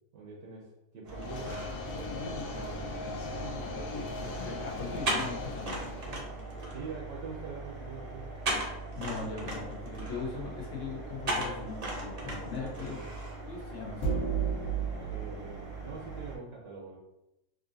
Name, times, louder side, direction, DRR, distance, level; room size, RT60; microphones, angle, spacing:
voice 1, 0.1-1.6 1.9-3.0 3.3-4.0 6.7-8.4 12.5-13.1 15.0-17.0, right 4 dB, 70° right, -3 dB, 1.1 m, -45 dB
sound 1, 1.0-16.4, right 2 dB, 45° right, 0.5 m, -38 dB
sound 2, 1.1-6.3, left 3 dB, 90° left, 1.1 m, -39 dB
voice 2, 3.6-5.9 9.0-13.1 13.4-14.2, left 5 dB, 65° left, -1 dB, 0.7 m, -40 dB
sound 3, 10.0-10.3 14.0-16.3, right 6 dB, 35° left, 1.0 m, -33 dB
3.7 x 2.6 x 2.5 m, 0.90 s
omnidirectional pair, 1.5 m